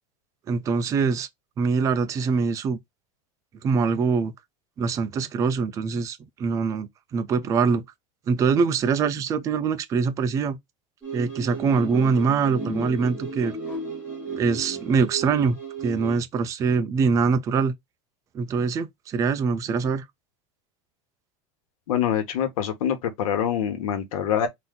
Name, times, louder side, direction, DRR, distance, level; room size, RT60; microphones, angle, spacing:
voice 1, 0.5-1.3 1.6-2.8 3.6-4.3 4.8-7.8 8.3-10.6 11.1-13.6 14.4-17.7 18.3-20.0, right 5 dB, 20° right, 0.4 m, -23 dB
sound 1, 11.0-16.2, right 3 dB, 10° left, 1.9 m, -34 dB
voice 2, 21.9-24.5, left 9 dB, 85° left, 1.3 m, -25 dB
4.0 x 2.7 x 3.7 m
supercardioid pair, 165°, 18 cm